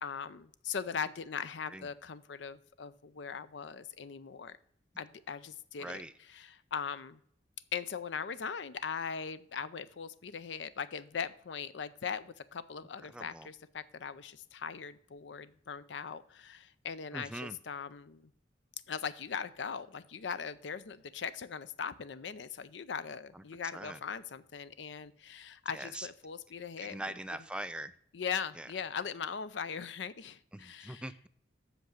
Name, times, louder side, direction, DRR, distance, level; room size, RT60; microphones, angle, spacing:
voice 1, 0.0-4.6 5.0-6.0 6.3-7.2 7.7-18.3 18.9-27.0 28.1-31.0, left 6 dB, 85° left, 15 dB, 0.5 m, -40 dB
voice 2, 5.8-6.1 13.1-13.5 17.1-17.6 23.3-23.4 23.7-24.0 25.7-26.1 26.8-27.9 28.6-28.7 30.5-31.3, right 1 dB, 5° right, 12 dB, 0.4 m, -42 dB
8.1 x 6.0 x 6.4 m, 0.65 s
head